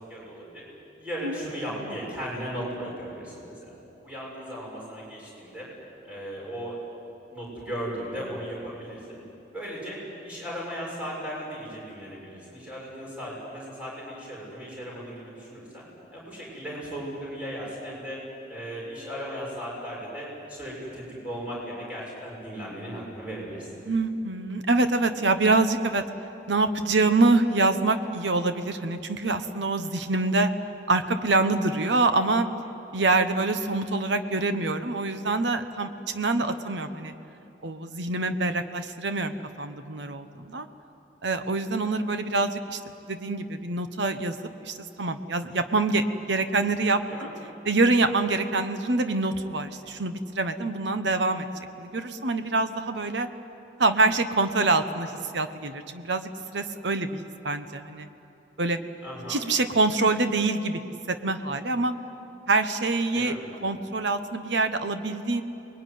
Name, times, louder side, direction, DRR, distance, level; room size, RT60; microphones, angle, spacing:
voice 1, 0.1-0.6 1.0-3.8 4.0-5.7 6.0-6.8 7.3-9.2 9.5-15.8 16.1-18.2 18.5-23.7 47.1-47.3 59.0-59.5 63.1-63.5, equal, 5° right, -5 dB, 7.0 m, -36 dB
voice 2, 23.9-26.0 26.5-30.5 30.9-32.5 32.9-37.1 37.6-40.7 41.2-42.8 43.1-47.0 47.6-51.5 51.8-53.3 53.8-58.1 58.6-58.8 59.3-60.8 61.1-61.9 62.5-63.3 63.6-65.4, right 3 dB, 75° right, 9 dB, 1.1 m, -25 dB
24.5 x 21.0 x 9.4 m, 2.9 s
head